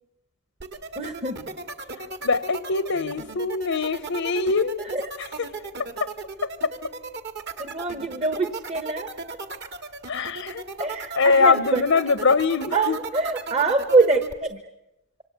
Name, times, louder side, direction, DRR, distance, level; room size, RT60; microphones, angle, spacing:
sound 1, 0.6-14.3, right 3 dB, 50° right, 2.1 m, -36 dB
voice 1, 1.0-1.4 4.9-5.0 7.6-9.1 10.8-11.8 12.7-14.2 14.5-14.6, right 3 dB, 30° right, 8 dB, 1.2 m, -24 dB
voice 2, 2.2-4.8 5.2-5.5 6.0-6.1 10.1-10.6 11.1-13.0, left 4 dB, 70° left, 13 dB, 0.9 m, -22 dB
26.5 x 25.5 x 8.2 m, 0.93 s
head